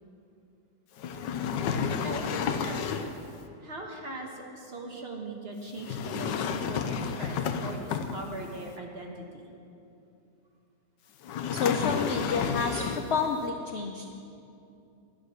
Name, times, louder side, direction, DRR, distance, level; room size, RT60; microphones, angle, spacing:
sound 1, 1.0-3.2 5.8-8.5 11.2-13.2, left 6 dB, 85° left, 1.3 m, -31 dB
voice 1, 1.8-2.9 3.6-6.8 7.2-9.5, right 2 dB, 40° right, 1 dB, 1.3 m, -40 dB
voice 2, 11.5-14.1, left 5 dB, 65° left, 5 dB, 0.6 m, -30 dB
11.0 x 10.0 x 6.4 m, 2.6 s
omnidirectional pair, 1.9 m